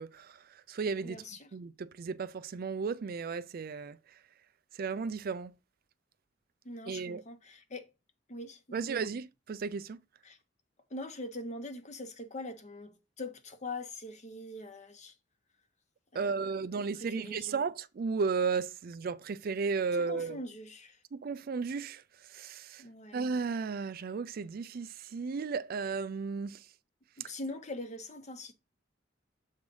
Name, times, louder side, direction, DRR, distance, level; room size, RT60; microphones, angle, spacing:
voice 1, 0.0-1.2 1.5-4.0 4.7-5.5 6.9-7.2 8.7-10.0 16.1-20.4 21.1-22.0 22.3-22.8 23.1-26.6, right 5 dB, 50° right, 0.4 m, -34 dB
voice 2, 1.0-1.5 6.6-7.9 8.3-8.9 10.2-10.4 10.9-15.1 16.1-17.5 19.9-21.0 22.8-23.2 27.2-28.5, left 2 dB, 40° left, 1.0 m, -43 dB
7.3 x 3.3 x 5.2 m
head